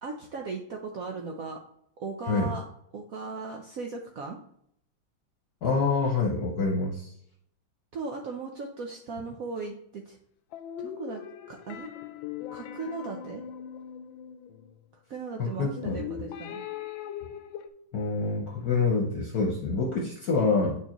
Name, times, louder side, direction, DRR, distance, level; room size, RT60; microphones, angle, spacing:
voice 1, 0.0-1.6 2.0-2.6 2.9-4.4 7.9-10.2 10.8-11.2 11.5-11.9 12.5-13.4 15.1-16.6, right 4 dB, 65° right, 1 dB, 0.9 m, -37 dB
voice 2, 5.6-7.1 15.4-16.0 17.9-20.8, left 4 dB, 60° left, -1 dB, 1.3 m, -26 dB
sound 1, 10.5-14.7 15.8-17.7, left 9 dB, 85° left, 1.3 m, -40 dB
9.2 x 4.6 x 2.9 m, 0.71 s
omnidirectional pair, 2.1 m